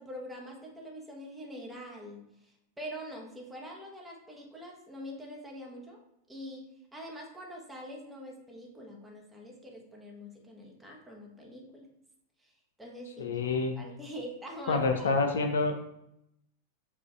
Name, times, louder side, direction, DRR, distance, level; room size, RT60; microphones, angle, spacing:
voice 1, 0.0-6.0 6.3-6.7 6.9-11.9 12.4-12.5 12.8-15.1, equal, 5° right, -1 dB, 1.0 m, -44 dB
voice 2, 13.2-13.7 14.7-15.7, left 3 dB, 65° left, 5 dB, 0.4 m, -27 dB
6.9 x 2.5 x 2.4 m, 0.79 s
figure-of-eight pair, 90°, 0 cm